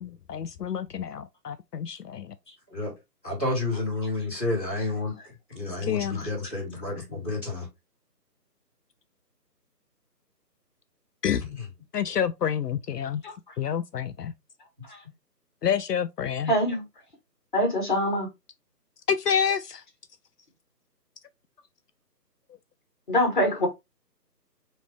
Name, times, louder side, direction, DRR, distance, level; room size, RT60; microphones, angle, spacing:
voice 1, 0.0-2.3 5.8-6.2 11.2-11.5 11.9-13.2 13.6-14.3 15.6-16.5 19.1-19.8, left 8 dB, 70° left, 0.5 m, -28 dB
voice 2, 3.2-7.7 11.5-11.7, left 2 dB, 10° right, 1.1 m, -30 dB
voice 3, 16.5-16.8 17.5-18.3 23.1-23.7, equal, 30° left, 1.4 m, -24 dB
4.1 x 3.2 x 3.3 m
figure-of-eight pair, 165°, 50 cm